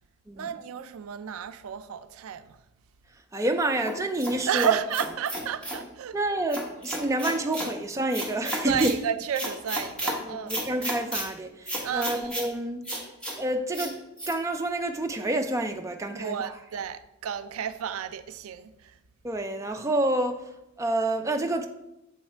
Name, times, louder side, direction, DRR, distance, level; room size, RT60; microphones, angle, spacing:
voice 1, 0.4-2.6 4.5-6.2 7.0-7.1 8.7-10.5 11.8-12.3 16.1-19.0, right 8 dB, 80° right, 0.4 m, -32 dB
voice 2, 3.1-4.8 6.1-9.0 10.2-12.8 13.4-14.0 14.3-16.6 19.2-21.7, right 1 dB, 15° right, 0.4 m, -28 dB
sound 1, 3.9-5.8 6.5-7.7 8.1-9.0 9.3-10.2 10.5-11.2 11.7-12.5 12.8-13.3 13.7-13.9 14.2-14.3, right 1 dB, 5° left, 1.0 m, -32 dB
7.2 x 3.2 x 4.4 m
head